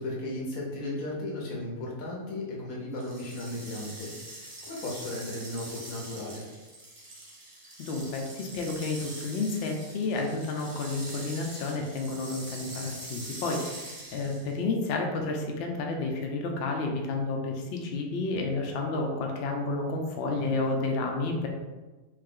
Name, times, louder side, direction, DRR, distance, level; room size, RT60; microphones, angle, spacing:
voice 1, 0.0-6.5 20.3-20.6, left 1 dB, 85° left, -3 dB, 1.4 m, -36 dB
sound 1, 3.0-14.6, right 2 dB, 30° right, 0.7 m, -44 dB
voice 2, 7.8-21.5, left 3 dB, 60° left, 1 dB, 0.7 m, -31 dB
3.2 x 2.7 x 3.7 m, 1.2 s
omnidirectional pair, 1.4 m